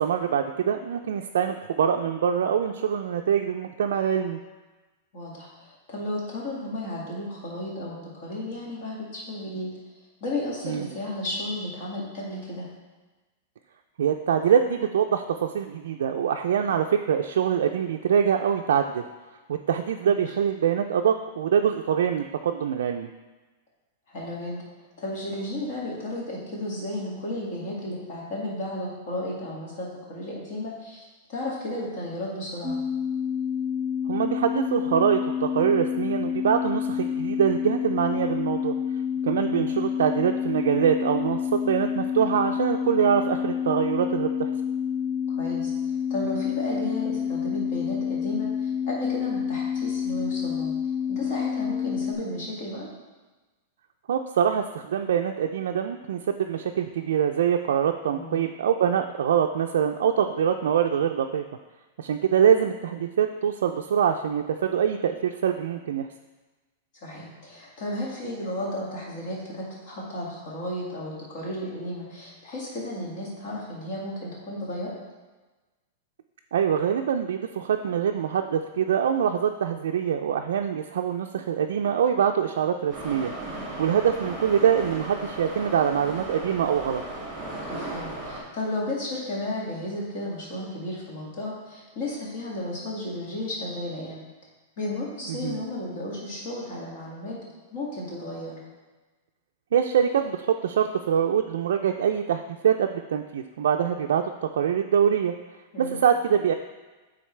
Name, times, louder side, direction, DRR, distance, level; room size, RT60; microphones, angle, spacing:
voice 1, 0.0-4.4 10.6-10.9 14.0-19.0 19.5-23.1 34.1-38.7 39.2-44.5 54.1-61.4 62.0-66.1 76.5-83.3 83.8-87.0 95.3-95.6 99.7-105.3 105.8-106.5, right 8 dB, 80° right, 4 dB, 0.3 m, -24 dB
voice 2, 5.1-9.7 10.2-12.7 20.0-20.2 24.1-24.6 25.0-32.8 39.4-39.7 45.3-45.7 46.1-50.7 51.1-52.9 58.1-58.4 67.0-74.9 87.7-94.2 94.8-97.4 97.7-98.6 105.7-106.0, left 1 dB, 45° left, -4 dB, 1.9 m, -33 dB
sound 1, 32.6-52.1, left 8 dB, 15° left, 0.7 m, -28 dB
Subway metro underground, 82.9-88.4, right 2 dB, 20° right, 1.9 m, -36 dB
9.0 x 3.8 x 3.2 m, 1.2 s
supercardioid pair, 170°, 0 cm